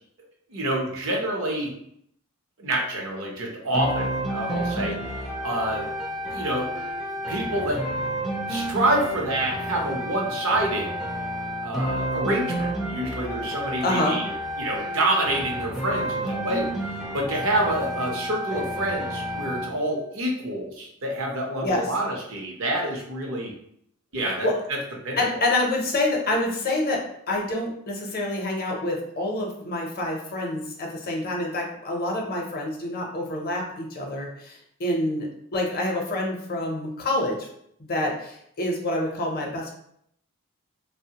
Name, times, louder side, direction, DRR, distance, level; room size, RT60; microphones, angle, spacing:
voice 1, 0.5-1.7 2.6-5.1 5.4-5.9 6.3-6.7 7.3-7.8 8.5-10.9 11.6-14.3 14.6-16.7 17.1-23.5 24.1-24.8 25.0-25.2, right 1 dB, 65° right, 0 dB, 0.7 m, -27 dB
sound 1, 3.7-19.8, equal, ahead, 0.4 m, -30 dB
voice 2, 13.8-14.2 21.6-21.9 24.2-24.5 25.2-27.0 27.3-35.3 35.5-37.4 37.8-39.7, left 1 dB, 45° left, 0 dB, 0.6 m, -27 dB
3.1 x 2.0 x 2.8 m, 0.71 s
head